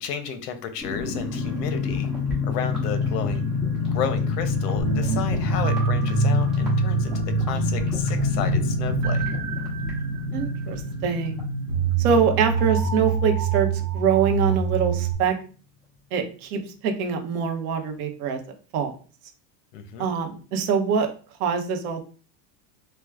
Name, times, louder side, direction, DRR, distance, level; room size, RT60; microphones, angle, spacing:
voice 1, 0.0-2.1 2.4-3.4 3.9-9.2 19.7-20.1, left 7 dB, 75° left, 8 dB, 0.8 m, -32 dB
sound 1, 0.8-13.1 13.4-13.5 13.8-14.1, left 5 dB, ahead, 1.1 m, -27 dB
sound 2, 4.8-15.1, right 7 dB, 35° right, 0.6 m, -26 dB
voice 2, 10.3-11.5 12.0-13.7 13.9-15.4 16.1-18.4 18.7-18.9 20.0-21.1 21.4-22.0, right 6 dB, 60° right, 5 dB, 0.8 m, -24 dB
4.4 x 2.1 x 2.4 m, 0.39 s
supercardioid pair, 155°, 49 cm